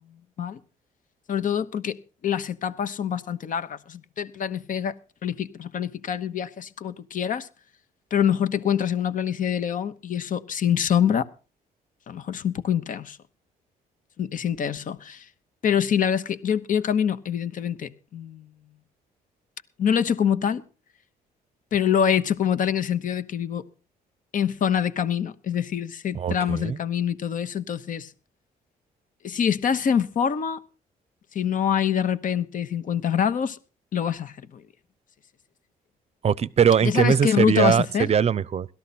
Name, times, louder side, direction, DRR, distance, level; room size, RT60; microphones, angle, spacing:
voice 1, 1.3-2.0 2.2-4.9 5.2-7.5 8.1-11.3 12.1-13.2 14.2-15.3 15.6-18.5 19.8-20.6 21.7-23.7 24.3-28.1 29.2-30.6 31.3-33.6 33.9-34.6 36.8-38.1, left 8 dB, 55° left, 1.0 m, -25 dB
voice 2, 26.1-26.8 36.2-38.7, right 7 dB, 40° right, 0.6 m, -21 dB
17.5 x 13.0 x 4.2 m
cardioid pair, 90°, 16 cm